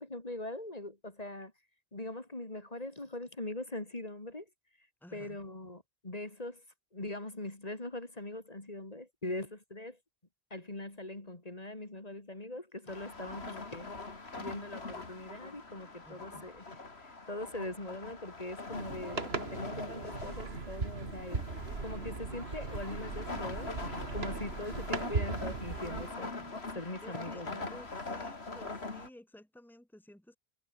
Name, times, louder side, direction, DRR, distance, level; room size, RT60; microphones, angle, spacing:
voice 1, 0.0-1.5 1.9-4.5 5.1-6.6 6.9-10.0 10.5-13.9 14.4-21.4 21.8-27.7, left 2 dB, 40° left, 2.9 m, -42 dB
voice 2, 5.0-5.4 16.0-16.5 27.0-27.4 27.7-30.4, left 1 dB, ahead, 2.3 m, -53 dB
sound 1, 12.9-29.1, left 3 dB, 85° left, 3.1 m, -43 dB
sound 2, 18.7-26.1, right 4 dB, 80° right, 2.4 m, -38 dB
omnidirectional pair, 1.0 m